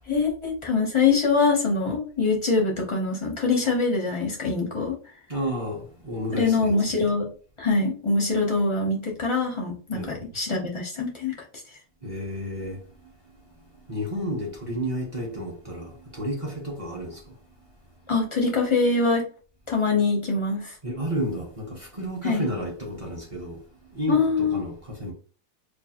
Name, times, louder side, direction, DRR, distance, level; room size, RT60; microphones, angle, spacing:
voice 1, 0.1-4.9 6.3-7.3 7.6-11.3 18.1-19.3 19.7-20.7 22.2-22.5 24.1-24.6, left 4 dB, 50° left, 0.3 m, -24 dB
voice 2, 5.3-7.1 9.9-10.3 12.0-12.8 13.9-17.2 20.8-23.6 23.9-25.1, equal, 50° right, 0.4 m, -31 dB
4.5 x 2.4 x 2.8 m
omnidirectional pair, 1.9 m